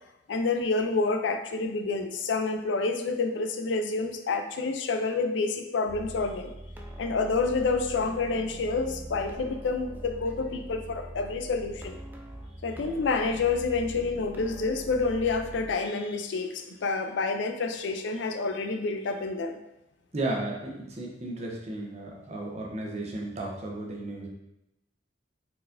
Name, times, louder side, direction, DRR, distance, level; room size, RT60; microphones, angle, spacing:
voice 1, 0.3-6.5 7.0-12.0 12.6-19.6, left 3 dB, 70° left, 6 dB, 0.4 m, -28 dB
sound 1, 5.9-15.7, equal, 10° right, 0.3 m, -42 dB
voice 2, 20.1-24.3, right 2 dB, 35° right, -1 dB, 0.8 m, -34 dB
4.5 x 4.0 x 2.6 m, 0.90 s
head